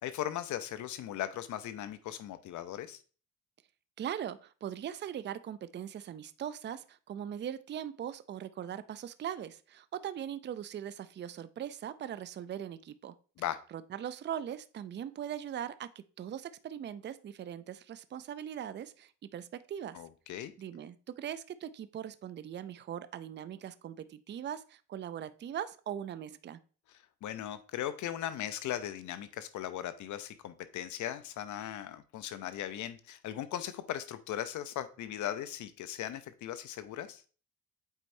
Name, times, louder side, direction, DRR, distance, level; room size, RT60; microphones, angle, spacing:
voice 1, 0.0-3.0 13.4-13.6 19.9-20.5 27.2-37.2, left 11 dB, 75° left, 0.7 m, -38 dB
voice 2, 4.0-13.2 13.7-20.0 20.6-26.6, right 9 dB, 35° right, 0.4 m, -40 dB
8.2 x 4.4 x 2.7 m
cardioid pair, 90°, 30 cm